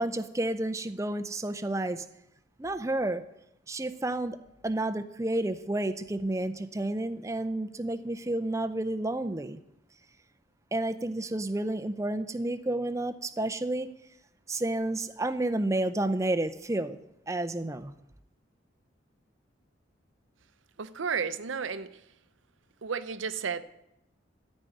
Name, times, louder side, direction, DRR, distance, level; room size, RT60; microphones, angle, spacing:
voice 1, 0.0-2.0 2.6-3.2 3.7-4.4 4.6-9.6 10.7-13.9 14.5-17.0 17.3-17.9, right 1 dB, 15° right, 0.5 m, -30 dB
voice 2, 20.8-22.1 22.8-23.6, right 6 dB, 75° right, 0.7 m, -32 dB
13.5 x 5.4 x 9.1 m
head